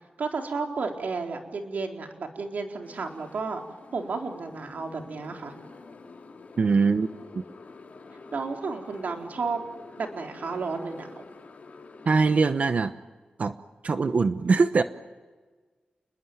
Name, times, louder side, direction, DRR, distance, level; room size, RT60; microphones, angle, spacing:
voice 1, 0.2-3.6 3.9-5.5 8.3-9.6 10.0-11.3, right 4 dB, 75° right, 3 dB, 4.0 m, -32 dB
Motorcycle, 2.8-12.6, left 3 dB, 60° left, 4.0 m, -48 dB
voice 2, 6.6-7.1 7.3-7.4 12.1-12.9 13.4-13.5 13.8-14.8, right 4 dB, 55° right, 10 dB, 1.0 m, -22 dB
29.5 x 21.5 x 9.3 m, 1.4 s
wide cardioid pair, 110°, 3 cm